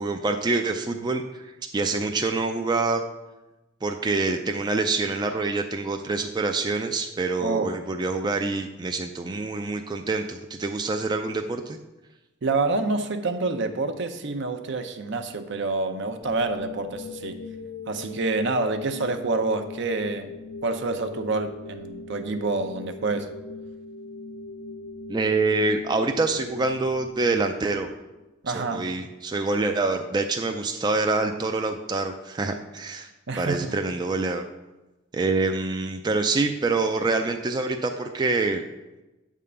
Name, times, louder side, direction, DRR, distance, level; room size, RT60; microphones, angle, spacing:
voice 1, 0.0-3.0 3.8-11.8 25.1-27.9 28.5-33.1 33.3-34.4 35.1-38.6, right 3 dB, 20° right, 4 dB, 0.3 m, -26 dB
voice 2, 7.4-7.7 12.4-17.4 17.9-20.3 20.6-23.3 28.4-28.9 33.3-33.7, right 3 dB, 60° right, 7 dB, 0.7 m, -27 dB
sound 1, 16.2-28.3, left 3 dB, 45° left, 0.4 m, -41 dB
8.4 x 3.7 x 6.7 m, 1.1 s
head